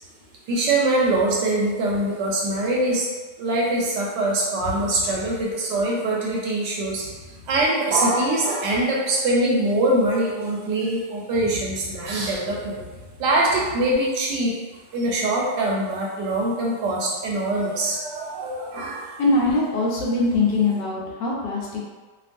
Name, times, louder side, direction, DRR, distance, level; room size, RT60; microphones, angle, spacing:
voice 1, 0.5-3.1 3.4-7.0 7.5-12.8 13.2-14.5 14.9-19.1, right 2 dB, 75° right, -3 dB, 1.1 m, -23 dB
voice 2, 19.2-21.8, left 2 dB, 75° left, -4 dB, 1.2 m, -22 dB
2.9 x 2.4 x 2.5 m, 1.3 s
omnidirectional pair, 2.0 m